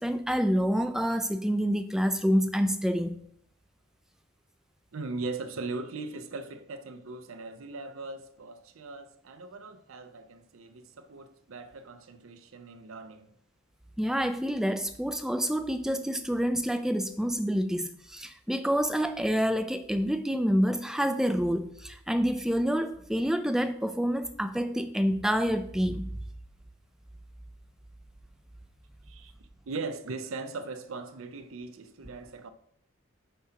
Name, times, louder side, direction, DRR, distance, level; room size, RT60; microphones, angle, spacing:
voice 1, 0.0-3.2 14.0-26.1, equal, ahead, 0.4 m, -27 dB
voice 2, 4.9-13.3 29.1-29.3 29.7-32.5, right 3 dB, 75° right, 0.6 m, -39 dB
8.4 x 2.8 x 5.7 m
head